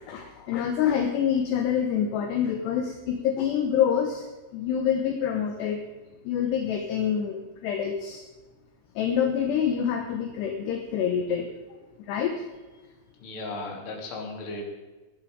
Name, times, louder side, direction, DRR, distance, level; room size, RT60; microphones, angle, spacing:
voice 1, 0.1-4.2 4.5-5.8 6.3-8.2 9.0-11.5 12.1-12.3, left 8 dB, 75° left, 5 dB, 2.7 m, -26 dB
voice 2, 13.2-14.6, left 2 dB, 35° left, 0 dB, 2.7 m, -36 dB
16.5 x 11.5 x 5.1 m, 1.2 s
omnidirectional pair, 5.9 m